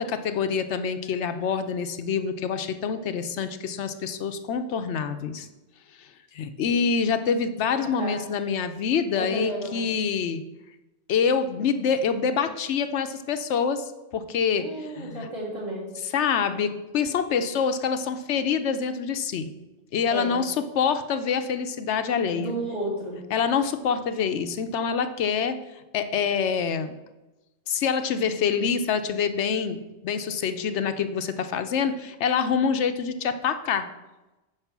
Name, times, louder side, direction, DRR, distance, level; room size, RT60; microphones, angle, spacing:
voice 1, 0.0-5.5 6.0-6.1 6.3-10.4 11.1-15.3 16.1-19.5 19.9-22.5 23.3-25.6 25.9-26.9 27.7-33.9, left 6 dB, 85° left, 9 dB, 1.0 m, -26 dB
voice 2, 7.8-8.2 9.1-9.9 14.6-15.9 20.1-20.3 22.3-23.2, right 1 dB, 40° right, -4 dB, 3.4 m, -32 dB
8.9 x 5.1 x 6.0 m, 1.0 s
omnidirectional pair, 1.1 m